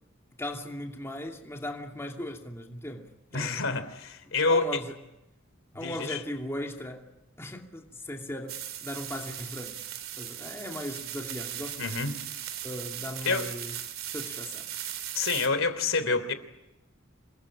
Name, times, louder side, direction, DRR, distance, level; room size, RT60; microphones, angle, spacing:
voice 1, 0.4-3.7 4.5-4.9 5.7-7.1 7.4-9.8 10.2-12.0 12.6-13.7 14.1-14.7, left 1 dB, 10° left, 2.5 m, -38 dB
voice 2, 3.3-4.8 5.8-6.2 11.8-12.1 13.2-13.5 15.1-16.3, left 4 dB, 75° left, 3.2 m, -27 dB
sound 1, 8.5-15.5, right 11 dB, 75° right, 3.1 m, -38 dB
27.5 x 21.0 x 8.7 m
head